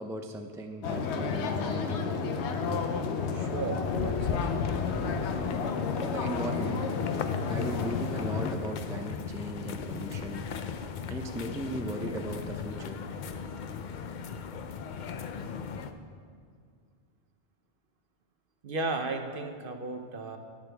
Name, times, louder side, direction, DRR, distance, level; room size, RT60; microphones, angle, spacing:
voice 1, 0.0-2.3 6.1-6.9 7.5-10.5 11.1-13.0, right 1 dB, 5° right, 4 dB, 0.3 m, -37 dB
sound 1, 0.8-8.6, left 5 dB, 85° left, 1.0 m, -31 dB
voice 2, 3.3-4.5 18.6-20.4, right 3 dB, 55° right, 5 dB, 0.9 m, -35 dB
sound 2, 3.8-15.9, left 6 dB, 55° left, 0.6 m, -37 dB
11.0 x 9.7 x 3.4 m, 2.1 s
omnidirectional pair, 1.1 m